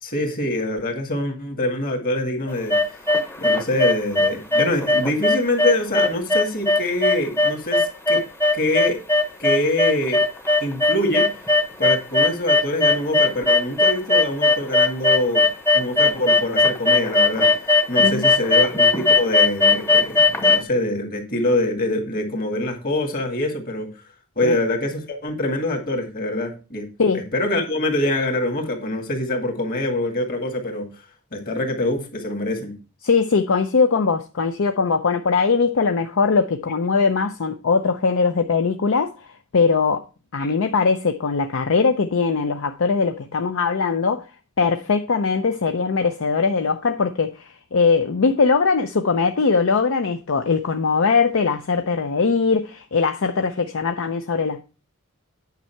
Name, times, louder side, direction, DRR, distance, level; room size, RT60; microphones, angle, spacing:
voice 1, 0.0-2.8 3.4-8.2 8.5-9.0 9.4-10.2 10.6-11.3 11.8-15.5 15.7-17.5 17.9-23.9 24.4-26.9 27.1-30.9 31.3-32.8 40.4-40.5, left 1 dB, 40° left, 2.0 m, -24 dB
sound 1, 2.5-20.6, left 3 dB, 10° left, 0.8 m, -18 dB
voice 2, 33.0-39.1 39.5-40.0 40.3-44.2 44.6-54.6, left 4 dB, 60° left, 0.5 m, -20 dB
9.2 x 5.4 x 4.5 m
head